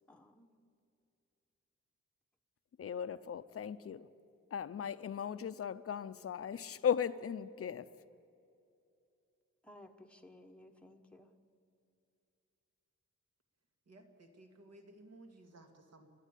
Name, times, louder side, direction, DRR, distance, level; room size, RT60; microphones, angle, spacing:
voice 1, 0.1-0.5 9.6-11.3, left 1 dB, 5° left, 3 dB, 1.1 m, -57 dB
voice 2, 2.8-4.1 4.5-8.0, left 8 dB, 50° left, 14 dB, 0.7 m, -37 dB
voice 3, 13.9-16.1, right 2 dB, 60° right, 4 dB, 2.3 m, -57 dB
30.0 x 12.0 x 8.4 m, 2.7 s
wide cardioid pair, 150°, 29 cm